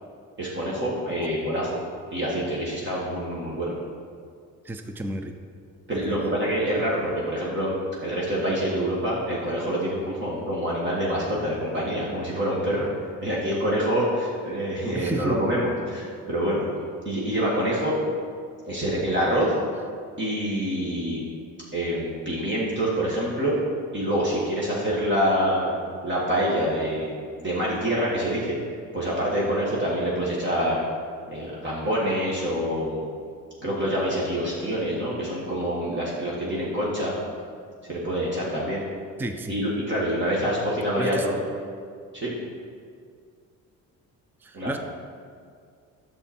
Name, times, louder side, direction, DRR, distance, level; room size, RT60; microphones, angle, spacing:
voice 1, 0.4-1.8 2.1-3.7 5.9-7.7 8.0-12.9 13.2-16.6 17.1-17.9 18.7-19.5 20.2-21.2 21.7-23.6 23.9-25.7 26.0-28.6 28.9-30.8 31.3-33.1 33.6-37.1 37.9-38.8 39.5-41.4 42.1-42.3 44.5-44.7, equal, 35° right, -6 dB, 1.9 m, -26 dB
voice 2, 4.6-5.3 5.9-6.3 14.9-15.4 39.2-39.6 41.0-41.3 44.4-44.8, right 1 dB, 5° right, 6 dB, 0.5 m, -32 dB
10.5 x 7.1 x 4.4 m, 2.2 s
cardioid pair, 125°, 34 cm